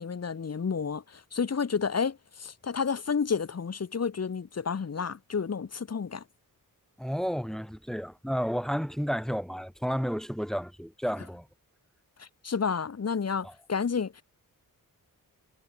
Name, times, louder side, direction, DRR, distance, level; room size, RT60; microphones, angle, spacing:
voice 1, 0.0-6.2 12.2-14.2, left 6 dB, 45° left, 2.0 m, -31 dB
voice 2, 7.0-11.5 13.4-13.5, equal, ahead, 1.5 m, -31 dB
wide cardioid pair, 130°, 35 cm